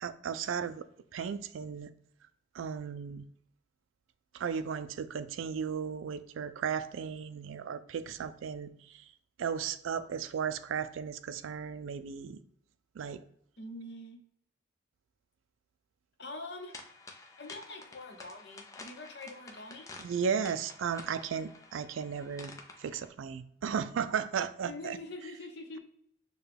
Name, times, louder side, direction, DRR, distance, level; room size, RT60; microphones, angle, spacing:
voice 1, 0.0-0.8 1.1-1.9 2.5-3.3 4.3-9.0 9.4-12.4 13.0-13.2 20.0-22.5 22.8-25.0, right 7 dB, 80° right, 0.3 m, -35 dB
voice 2, 13.6-14.2 16.2-16.8 17.4-19.9 24.6-25.8, left 2 dB, 55° left, 0.7 m, -44 dB
sound 1, 16.7-23.1, left 3 dB, 15° left, 0.4 m, -51 dB
6.6 x 2.3 x 3.3 m
head